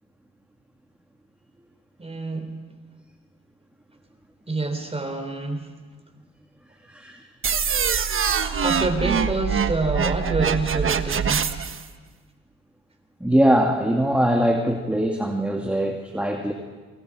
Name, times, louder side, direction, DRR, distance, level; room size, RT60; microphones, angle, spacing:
voice 1, 2.0-2.5 4.5-5.7 8.6-11.5, right 2 dB, 20° right, 6 dB, 3.5 m, -27 dB
voice 2, 6.9-7.2 8.4-8.6 13.2-16.5, equal, 5° right, 1 dB, 2.2 m, -22 dB
sound 1, 7.4-11.8, right 7 dB, 45° right, 1.3 m, -24 dB
27.5 x 25.5 x 4.9 m, 1.4 s
cardioid pair, 90°, 30 cm